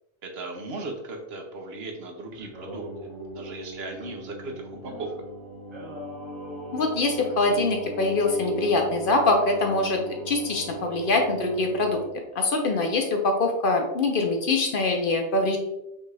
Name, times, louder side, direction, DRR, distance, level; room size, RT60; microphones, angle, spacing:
voice 1, 0.2-5.1, right 2 dB, 65° right, 2 dB, 1.0 m, -37 dB
Singing, 2.3-12.1, right 1 dB, 25° right, 0.9 m, -39 dB
voice 2, 6.7-10.0 10.3-12.0 12.3-15.6, left 2 dB, 60° left, 3 dB, 0.7 m, -23 dB
5.3 x 2.4 x 3.3 m, 0.89 s
omnidirectional pair, 1.2 m